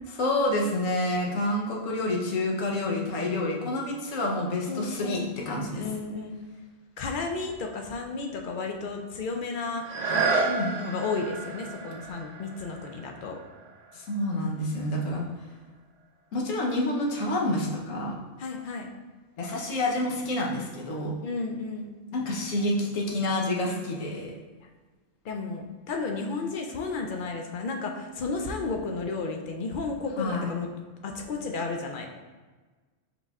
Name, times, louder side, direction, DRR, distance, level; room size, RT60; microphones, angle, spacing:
voice 1, 0.2-5.8 10.4-10.7 13.9-15.2 16.3-18.2 19.4-21.1 22.1-24.3 30.2-30.5, left 1 dB, 80° left, -1 dB, 1.2 m, -28 dB
voice 2, 4.7-5.3 5.7-6.4 7.0-9.8 10.7-13.4 18.4-18.9 21.2-21.9 25.2-30.7 31.0-32.1, left 4 dB, 65° left, 2 dB, 0.5 m, -33 dB
sound 1, 9.8-15.5 16.0-16.1, right 3 dB, 60° right, 0.4 m, -32 dB
5.5 x 4.1 x 2.3 m, 1.3 s
omnidirectional pair, 1.3 m